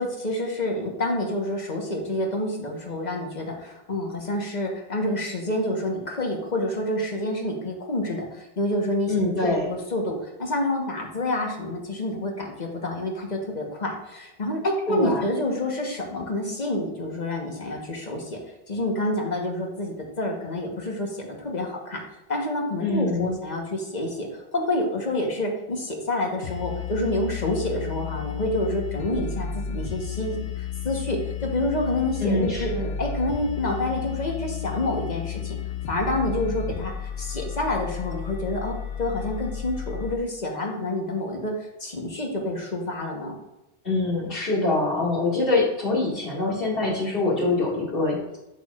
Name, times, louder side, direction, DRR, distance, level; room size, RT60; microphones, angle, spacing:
voice 1, 0.0-9.1 9.4-18.4 18.7-22.0 22.3-32.7 33.0-35.6 35.9-36.9 37.2-43.4, left 1 dB, 45° left, 1 dB, 1.3 m, -28 dB
voice 2, 9.1-9.7 14.9-15.2 22.8-23.3 32.2-32.9 43.8-48.4, left 2 dB, 60° left, -4 dB, 2.3 m, -24 dB
sound 1, 26.4-40.1, left 7 dB, 80° left, 1.0 m, -32 dB
8.4 x 6.5 x 2.4 m, 0.94 s
omnidirectional pair, 1.1 m